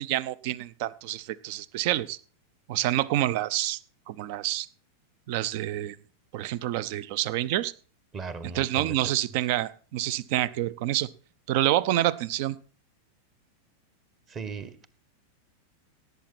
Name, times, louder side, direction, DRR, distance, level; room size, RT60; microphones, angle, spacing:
voice 1, 0.0-2.2 2.7-3.8 4.1-4.7 5.3-6.0 6.3-7.7 8.5-11.1 11.5-12.6, right 14 dB, 45° right, 21 dB, 0.6 m, -27 dB
voice 2, 8.1-9.0 14.3-14.9, right 5 dB, 25° right, 12 dB, 1.6 m, -37 dB
17.5 x 8.2 x 4.3 m, 0.40 s
figure-of-eight pair, 90°, 0 cm